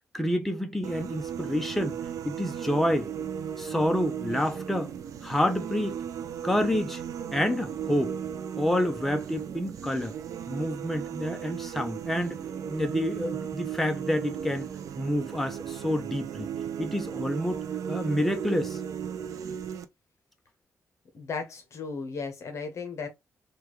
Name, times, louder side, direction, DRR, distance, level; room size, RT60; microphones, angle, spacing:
voice 1, 0.1-2.0 2.2-3.1 3.6-4.9 5.2-6.0 6.4-7.0 7.3-8.2 8.6-10.1 10.5-12.4 12.7-14.7 15.0-16.5 16.8-17.6 17.9-18.8, left 1 dB, 5° left, 0.5 m, -28 dB
sound 1, 0.8-19.9, right 8 dB, 80° right, 0.4 m, -36 dB
voice 2, 21.1-23.1, left 4 dB, 60° left, 0.8 m, -35 dB
3.4 x 2.2 x 3.0 m
wide cardioid pair, 135°, 6 cm